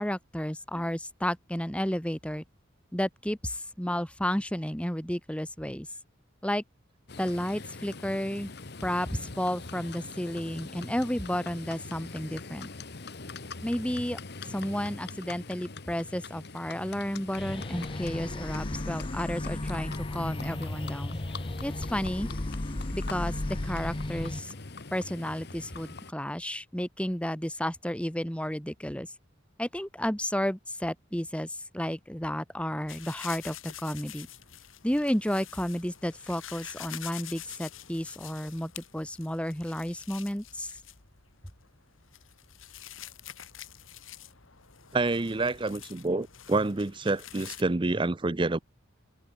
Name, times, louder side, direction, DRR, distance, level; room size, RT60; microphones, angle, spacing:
voice 1, 0.0-2.4 2.9-5.9 6.4-6.6 7.2-8.5 8.8-12.7 13.6-14.2 14.5-21.2 21.6-22.3 22.9-23.3 23.6-24.5 24.9-29.1 29.6-34.3 34.8-40.7, equal, 5° left, 1.9 m, -32 dB
Livestock farm animals working animals, 7.1-26.1, left 3 dB, 55° left, 1.4 m, -43 dB
sound 1, 17.4-24.4, left 1 dB, 25° left, 0.7 m, -35 dB
sound 2, 32.9-47.6, left 11 dB, 75° left, 2.2 m, -47 dB
voice 2, 44.9-48.6, right 2 dB, 25° right, 0.6 m, -28 dB
open air
head